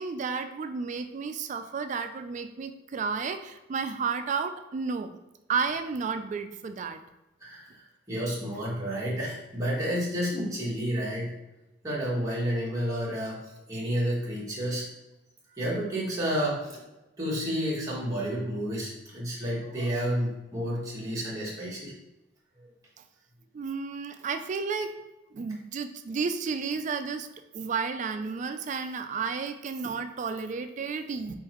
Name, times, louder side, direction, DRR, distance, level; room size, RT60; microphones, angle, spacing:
voice 1, 0.0-5.2 5.5-7.0 23.5-24.9 25.3-27.3 27.5-31.3, right 5 dB, 40° right, 8 dB, 0.3 m, -32 dB
voice 2, 8.1-11.3 11.8-13.4 13.7-14.8 15.6-16.8 17.2-21.9 22.6-22.7, equal, 20° right, -6 dB, 1.3 m, -30 dB
4.5 x 3.7 x 3.0 m, 0.96 s
head